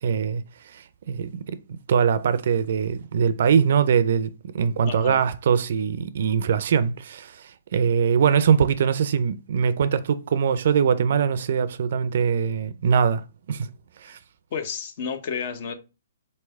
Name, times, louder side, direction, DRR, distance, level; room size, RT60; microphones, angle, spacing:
voice 1, 0.0-13.2 13.5-13.7 14.0-14.2, right 7 dB, 60° right, 0.4 m, -22 dB
voice 2, 4.9-5.2 14.5-15.7, left 6 dB, 45° left, 0.7 m, -31 dB
4.2 x 3.2 x 3.4 m
hypercardioid pair, 155°, 0 cm